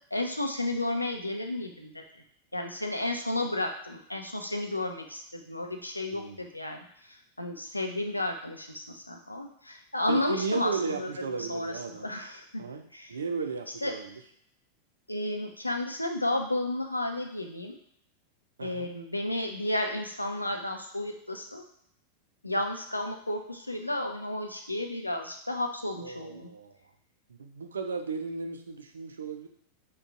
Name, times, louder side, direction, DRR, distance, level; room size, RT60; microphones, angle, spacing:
voice 1, 0.1-2.0 2.5-11.1 11.4-12.6 12.9-13.2 13.8-13.9 15.1-17.8 18.6-21.6 22.4-26.5, left 1 dB, 85° left, 4 dB, 0.5 m, -32 dB
voice 2, 10.1-12.1 12.6-12.8 13.1-14.2 18.6-18.9 26.0-26.8 27.4-29.5, right 5 dB, 70° right, 6 dB, 0.4 m, -34 dB
3.9 x 2.3 x 3.6 m, 0.68 s
figure-of-eight pair, 90°, 0 cm